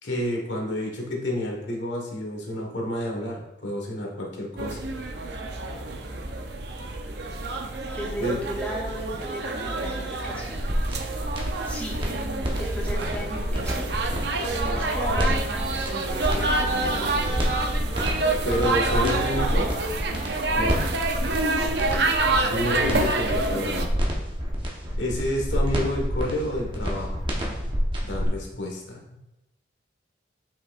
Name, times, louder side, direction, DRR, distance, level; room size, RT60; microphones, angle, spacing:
voice 1, 0.0-4.8 8.2-8.4 18.4-19.7 20.5-20.8 22.5-23.9 25.0-27.3 28.0-29.0, left 1 dB, 80° left, -1 dB, 1.5 m, -29 dB
sound 1, 4.6-23.9, right 2 dB, 65° right, 0.6 m, -27 dB
voice 2, 7.9-11.0 11.6-12.0 12.6-13.9 14.4-17.3, equal, 10° left, -3 dB, 0.8 m, -36 dB
sound 2, 10.5-28.3, equal, 25° right, 1.0 m, -28 dB
7.5 x 5.7 x 2.5 m, 0.96 s
head